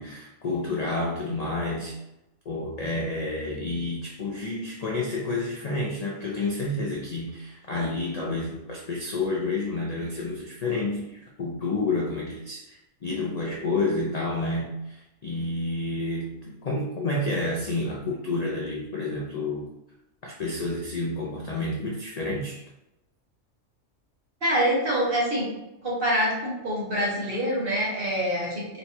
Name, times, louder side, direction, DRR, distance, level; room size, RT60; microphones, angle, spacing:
voice 1, 0.0-2.0 2.5-12.8 13.0-19.7 20.2-22.6, left 2 dB, 55° left, -2 dB, 0.4 m, -29 dB
voice 2, 24.4-25.5 25.8-28.7, equal, 45° right, -6 dB, 1.6 m, -25 dB
4.0 x 2.3 x 4.2 m, 0.92 s
omnidirectional pair, 1.3 m